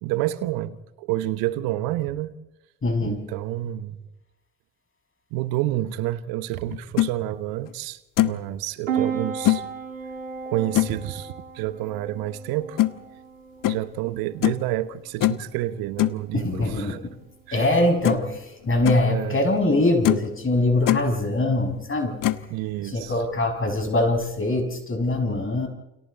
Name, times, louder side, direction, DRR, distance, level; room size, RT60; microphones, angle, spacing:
voice 1, 0.0-2.4 3.0-4.1 5.3-9.6 10.4-12.8 13.6-17.1 17.5-17.7 19.1-19.4 22.5-23.1, right 14 dB, 70° right, 14 dB, 1.2 m, -29 dB
voice 2, 2.8-3.2 16.3-17.2 17.5-22.2 22.8-25.7, left 2 dB, 35° left, 4 dB, 6.7 m, -23 dB
sound 1, 6.7-7.1 7.7-7.8 8.2-8.5 9.4-9.6 10.7-11.0 12.8-12.9 13.6-13.8 14.4-14.7 15.2-15.5 16.0-16.2 17.6-17.7 18.0-18.3 18.6-19.0 19.6-19.7 20.0-20.3 20.6-21.0 22.2-22.5, left 15 dB, 55° left, 1.2 m, -22 dB
Piano, 8.9-23.8, right 7 dB, 90° right, 3.1 m, -37 dB
29.5 x 27.5 x 4.2 m, 0.95 s
hypercardioid pair, 45°, 37 cm